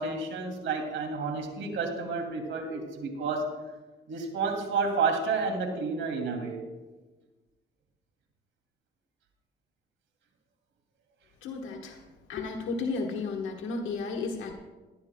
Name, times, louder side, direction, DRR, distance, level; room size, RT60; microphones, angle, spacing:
voice 1, 0.0-3.5 4.1-6.6, right 4 dB, 75° right, 3 dB, 2.7 m, -30 dB
voice 2, 11.4-12.0 12.3-14.5, left 4 dB, 80° left, 1 dB, 1.4 m, -33 dB
20.0 x 12.0 x 2.3 m, 1.2 s
cardioid pair, 90°, 20 cm